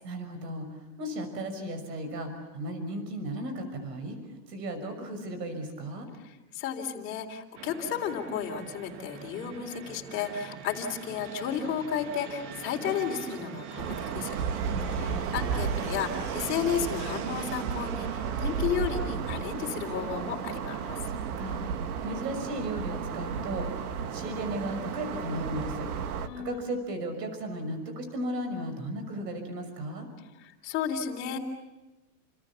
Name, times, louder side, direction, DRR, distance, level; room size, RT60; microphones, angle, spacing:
voice 1, 0.0-4.2 4.5-6.1 14.7-15.2 21.1-21.7 22.0-25.9 26.4-30.1, right 1 dB, 90° right, 8 dB, 6.2 m, -35 dB
voice 2, 6.2-14.3 14.8-21.0 26.3-26.5 30.4-31.4, left 8 dB, 25° left, 2 dB, 3.7 m, -33 dB
Fixed-wing aircraft airplane, 7.6-25.6, right 8 dB, 45° right, 2.1 m, -42 dB
sound 1, 13.8-26.3, right 6 dB, 65° right, 2.1 m, -34 dB
30.0 x 27.5 x 7.2 m, 1.0 s
supercardioid pair, 175°, 48 cm